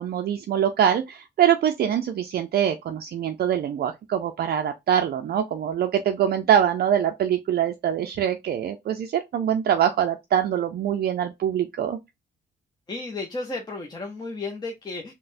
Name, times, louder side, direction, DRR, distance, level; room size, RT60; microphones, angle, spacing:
voice 1, 0.0-12.0, right 9 dB, 50° right, 0.4 m, -24 dB
voice 2, 12.9-15.1, left 3 dB, 20° left, 0.7 m, -33 dB
3.9 x 2.1 x 2.5 m
cardioid pair, 90°, 20 cm